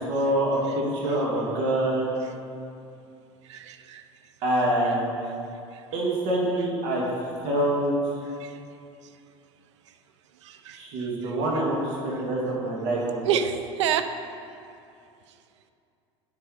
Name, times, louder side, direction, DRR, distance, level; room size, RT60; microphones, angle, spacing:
voice 1, 0.1-2.1 4.4-5.2 5.9-7.1 7.4-8.0 10.7-13.2, right 1 dB, 60° right, -3 dB, 2.0 m, -25 dB
voice 2, 3.4-4.0 5.7-5.8 8.4-8.6 10.4-11.4 12.1-12.2 13.2-14.1, right 8 dB, 80° right, 9 dB, 0.6 m, -29 dB
9.9 x 6.7 x 4.9 m, 2.5 s
hypercardioid pair, 80°, 15 cm